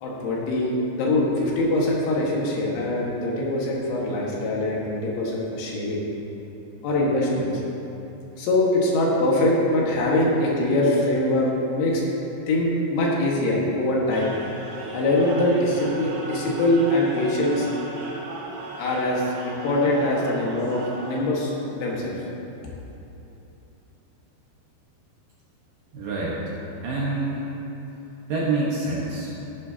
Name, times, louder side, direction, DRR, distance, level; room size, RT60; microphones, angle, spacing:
voice 1, 0.0-6.0 6.8-7.5 8.4-12.0 12.5-14.3 14.9-17.7 18.8-22.2, left 1 dB, 80° left, -4 dB, 4.0 m, -23 dB
sound 1, 14.1-21.2, right 2 dB, 85° right, 4.1 m, -37 dB
voice 2, 25.9-26.4 26.8-27.5 28.3-29.3, right 3 dB, 65° right, -6 dB, 2.4 m, -26 dB
14.5 x 11.5 x 2.8 m, 3.0 s
omnidirectional pair, 5.4 m